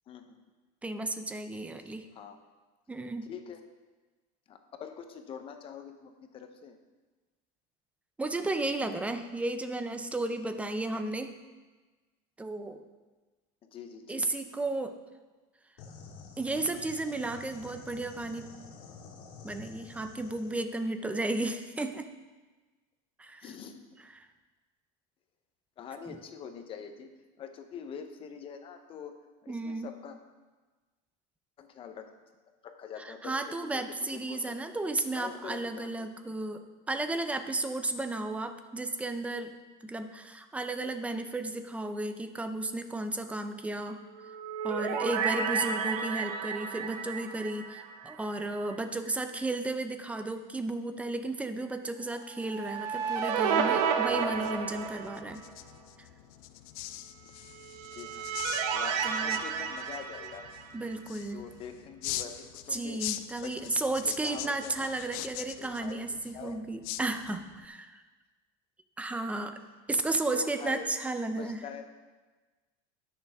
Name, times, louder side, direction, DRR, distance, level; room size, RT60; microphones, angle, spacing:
voice 1, 0.1-0.4 1.8-2.4 3.3-3.6 4.5-6.8 13.6-14.2 23.4-23.8 25.8-27.1 27.4-29.2 29.4-30.2 31.6-32.1 32.6-34.6 35.1-36.1 57.9-58.3 58.7-60.5 61.3-63.0 63.4-63.7 64.0-66.0 66.3-66.6 70.3-70.9 71.4-71.8, left 7 dB, 30° left, 6 dB, 0.8 m, -44 dB
voice 2, 0.8-2.1 2.9-3.3 8.2-11.3 12.4-12.8 14.1-14.9 16.4-18.5 19.4-22.1 23.2-23.5 26.1-26.2 29.5-29.9 33.0-36.6 36.9-39.5 39.8-44.0 44.6-55.4 56.0-56.1 59.0-59.4 60.7-61.5 62.7-68.0 69.0-69.5 69.9-71.6, right 2 dB, 5° right, 8 dB, 0.5 m, -33 dB
sound 1, 15.8-20.6, left 5 dB, 85° left, 2.2 m, -49 dB
sound 2, 44.2-48.5 48.7-48.8 52.4-55.5 57.5-60.9, right 7 dB, 85° right, 1.0 m, -32 dB
sound 3, 54.1-67.6, left 14 dB, 70° left, 0.6 m, -43 dB
18.5 x 6.8 x 3.5 m, 1.3 s
cardioid pair, 165°, 19 cm